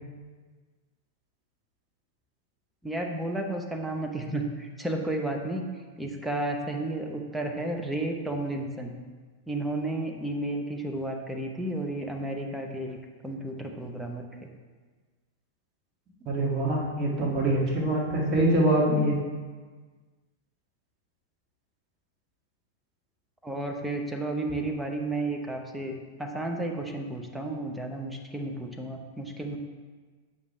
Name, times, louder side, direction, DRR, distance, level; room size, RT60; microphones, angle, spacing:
voice 1, 2.8-5.7 6.0-9.0 9.5-14.2 23.4-29.6, right 1 dB, 5° right, 2 dB, 0.9 m, -32 dB
voice 2, 16.3-19.2, right 1 dB, 30° right, -3 dB, 1.9 m, -24 dB
8.3 x 5.2 x 3.3 m, 1.4 s
figure-of-eight pair, 95°, 0 cm